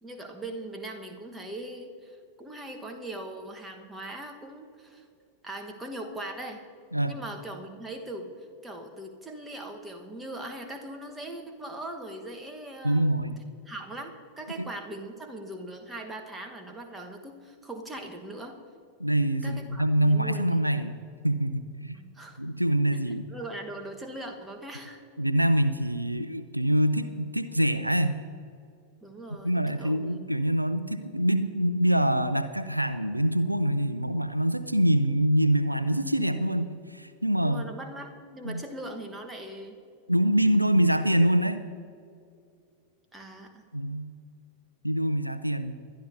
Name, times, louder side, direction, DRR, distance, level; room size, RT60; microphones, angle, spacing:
voice 1, 0.0-5.0 5.4-6.6 7.0-8.3 8.6-13.3 13.6-18.6 19.4-20.7 21.9-22.4 23.1-25.0 29.0-30.2 37.4-39.8 43.1-43.6, right 1 dB, 10° right, 3 dB, 1.3 m, -40 dB
voice 2, 12.8-13.4 14.6-14.7 19.0-21.0 21.2-22.0 22.4-23.2 25.2-28.1 29.3-37.7 38.4-38.6 40.1-41.6 43.7-44.1 44.8-45.7, right 1 dB, 90° right, 12 dB, 0.4 m, -25 dB
21.5 x 11.0 x 2.7 m, 2.4 s
figure-of-eight pair, 90°, 0 cm